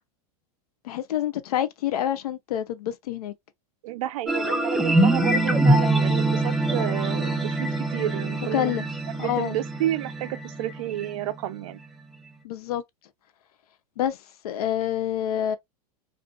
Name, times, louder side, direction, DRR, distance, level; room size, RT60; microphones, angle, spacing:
voice 1, 0.8-3.3 8.5-8.9 9.2-9.6 12.4-12.8 14.0-14.2 14.4-15.6, left 11 dB, 85° left, 0.5 m, -27 dB
voice 2, 3.8-8.7 9.2-11.8, right 13 dB, 70° right, 0.4 m, -31 dB
sound 1, 4.3-11.3, right 2 dB, ahead, 0.4 m, -24 dB
2.4 x 2.2 x 2.3 m
supercardioid pair, 125°, 19 cm